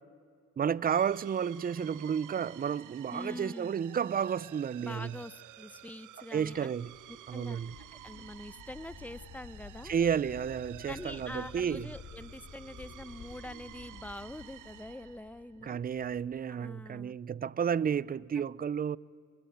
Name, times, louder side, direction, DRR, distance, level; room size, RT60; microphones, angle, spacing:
voice 1, 0.6-5.1 6.3-6.9 7.3-7.7 9.8-11.9 15.6-19.0, right 7 dB, 30° right, 0.5 m, -32 dB
sound 1, 0.9-15.6, right 13 dB, 85° right, 1.2 m, -52 dB
voice 2, 3.1-3.7 4.8-6.7 7.1-9.9 10.9-15.8 16.5-17.1 18.4-18.5, left 1 dB, 5° left, 0.8 m, -45 dB
sound 2, 6.5-16.4, left 5 dB, 65° left, 4.4 m, -52 dB
25.0 x 21.5 x 9.2 m
cardioid pair, 90°, 30 cm